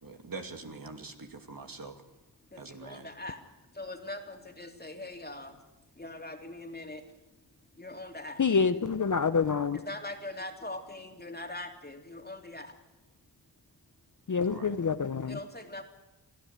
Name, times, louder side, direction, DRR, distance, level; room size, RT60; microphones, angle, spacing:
voice 1, 0.0-2.0 2.6-3.1 9.7-9.8 14.5-14.7, right 3 dB, 55° right, 5 dB, 2.6 m, -44 dB
voice 2, 2.5-3.4 3.7-5.6 5.9-7.2 7.7-8.9 9.7-12.8 15.3-15.8, left 2 dB, 20° left, 4 dB, 3.0 m, -42 dB
voice 3, 8.4-9.8 14.3-15.4, left 5 dB, 45° left, 11 dB, 0.9 m, -27 dB
24.0 x 14.5 x 9.2 m, 1.1 s
cardioid pair, 50°, 42 cm